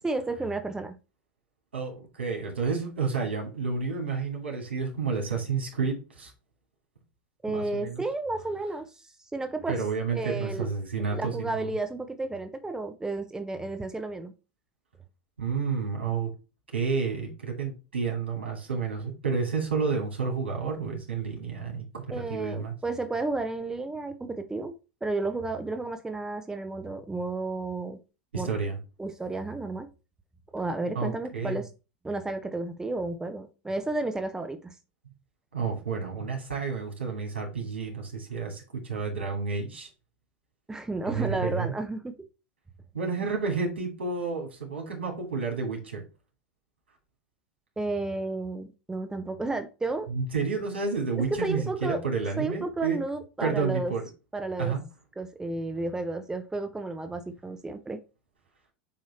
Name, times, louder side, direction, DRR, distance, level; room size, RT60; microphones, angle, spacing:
voice 1, 0.0-0.9 7.4-8.9 9.3-9.8 10.1-10.7 11.1-14.3 22.1-24.7 25.0-28.0 28.3-28.5 29.0-29.9 30.5-31.7 32.0-34.7 40.7-42.2 47.8-50.1 51.4-52.0 52.4-53.9 54.3-54.7 55.2-58.0, right 2 dB, 10° right, 0.9 m, -32 dB
voice 2, 1.7-6.3 7.5-8.0 9.7-11.7 15.4-16.3 16.7-22.7 28.3-28.8 30.9-31.6 35.5-39.9 41.1-41.7 42.9-46.0 50.1-53.0 53.4-54.0 54.6-54.8, right 5 dB, 90° right, 2.8 m, -30 dB
8.6 x 3.1 x 4.4 m
hypercardioid pair, 95°, 6 cm